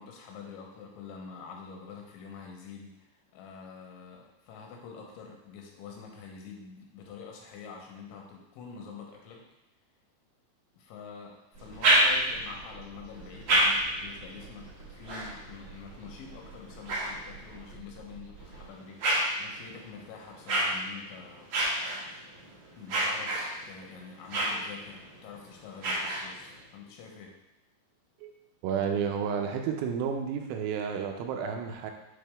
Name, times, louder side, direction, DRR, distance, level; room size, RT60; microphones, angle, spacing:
voice 1, 0.0-9.4 10.8-14.7 14.9-21.5 22.8-27.3, left 5 dB, 85° left, 0 dB, 3.2 m, -46 dB
sound 1, 11.5-18.7, right 5 dB, 35° right, 2.3 m, -50 dB
sound 2, 11.5-12.5 13.1-17.8 18.3-26.6, right 1 dB, 65° right, 1.5 m, -31 dB
voice 2, 28.6-31.9, right 7 dB, 90° right, 4 dB, 3.1 m, -31 dB
8.2 x 3.6 x 3.4 m, 0.93 s
omnidirectional pair, 5.3 m